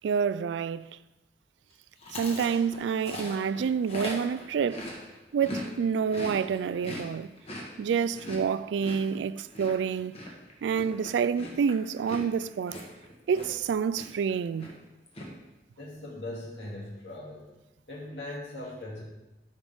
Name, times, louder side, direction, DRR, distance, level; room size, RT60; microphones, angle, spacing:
voice 1, 0.0-0.9 2.2-4.9 5.3-7.3 7.8-10.1 10.6-12.8 13.3-14.7, right 6 dB, 85° right, 0.3 m, -28 dB
Chewing mastication, 2.0-5.7 5.9-13.7 13.9-14.3 14.6-15.3, equal, 35° left, 1.4 m, -40 dB
voice 2, 15.8-17.5 17.9-19.0, left 1 dB, 80° left, 2.4 m, -39 dB
13.0 x 5.3 x 3.5 m
head